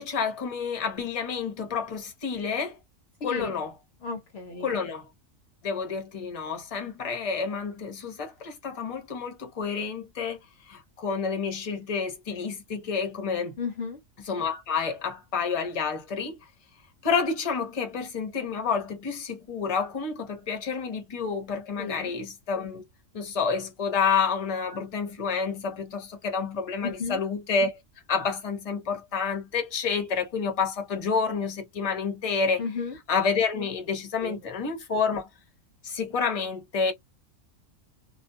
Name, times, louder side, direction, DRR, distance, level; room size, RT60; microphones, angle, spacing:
voice 1, 0.0-2.8 3.2-3.7 4.6-5.1 5.6-10.4 10.7-13.6 14.3-16.4 17.0-22.8 23.1-27.7 28.1-32.6 33.1-35.3 35.8-36.9, left 5 dB, 30° left, 0.8 m, -29 dB
voice 2, 3.2-3.5 4.0-4.8 13.6-14.0 21.8-22.1 26.8-27.2 32.6-33.0 34.2-34.4, left 5 dB, 60° left, 0.8 m, -33 dB
2.4 x 2.2 x 2.6 m
omnidirectional pair, 1.4 m